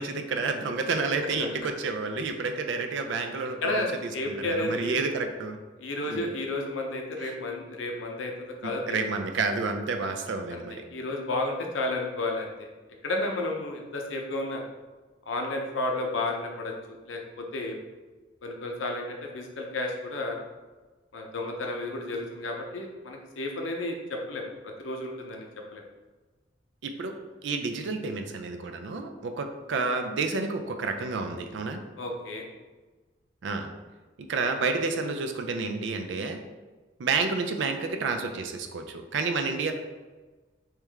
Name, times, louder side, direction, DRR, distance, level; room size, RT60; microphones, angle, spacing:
voice 1, 0.0-5.6 6.1-6.2 7.2-7.4 8.6-10.8 26.8-27.1 27.4-31.8 33.4-33.7 34.2-36.4 37.0-39.7, right 4 dB, 75° right, 6 dB, 0.4 m, -30 dB
voice 2, 4.1-5.1 5.8-8.3 8.6-9.0 10.5-12.7 13.0-14.6 15.3-16.7 17.1-17.8 18.4-20.4 21.1-25.5 25.7-25.8 32.0-32.5, left 2 dB, 90° left, 1 dB, 0.7 m, -32 dB
3.3 x 3.1 x 3.5 m, 1.3 s
head